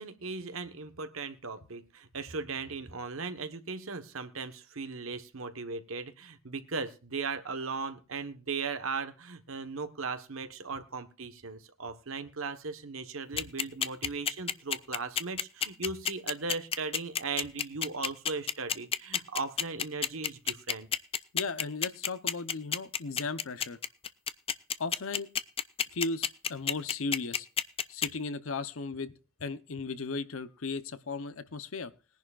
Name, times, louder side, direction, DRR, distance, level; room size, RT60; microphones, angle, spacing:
voice 1, 0.0-20.9, right 4 dB, 90° right, 9 dB, 1.2 m, -37 dB
sound 1, 13.4-28.1, left 8 dB, 30° left, 0.5 m, -29 dB
voice 2, 21.3-23.8 24.8-25.3 25.9-27.5 27.9-29.1 29.4-31.9, left 3 dB, 85° left, 13 dB, 0.8 m, -36 dB
21.0 x 10.5 x 2.5 m, 0.34 s
head